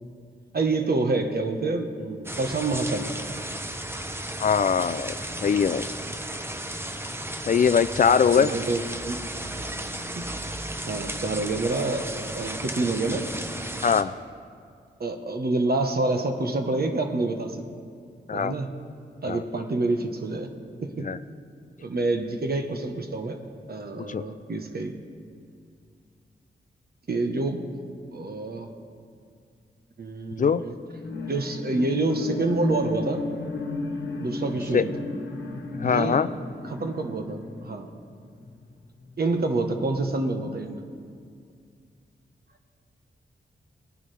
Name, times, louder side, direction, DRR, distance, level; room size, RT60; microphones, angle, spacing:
voice 1, 0.5-3.1 8.4-9.2 10.1-10.2 10.9-13.3 15.0-17.6 18.3-18.7 19.2-20.5 20.8-21.1 21.8-23.4 23.7-24.9 27.1-27.6 28.1-28.7 30.0-30.7 31.2-33.2 34.2-35.0 35.8-36.2 36.6-37.9 39.2-40.8, right 3 dB, 55° right, 5 dB, 1.2 m, -27 dB
sound 1, 2.2-14.0, right 1 dB, 10° right, 0.8 m, -34 dB
voice 2, 4.4-5.1 5.4-5.9 7.5-8.5 13.8-14.1 18.3-18.5 19.3-19.4 21.0-21.2 24.1-24.2 30.4-30.6 34.7-34.8 35.8-36.3, left 6 dB, 45° left, 13 dB, 0.4 m, -21 dB
sound 2, 30.8-38.6 39.1-39.2, left 3 dB, 70° left, 1.3 m, -33 dB
19.0 x 9.8 x 3.4 m, 2.2 s
cardioid pair, 65°, 19 cm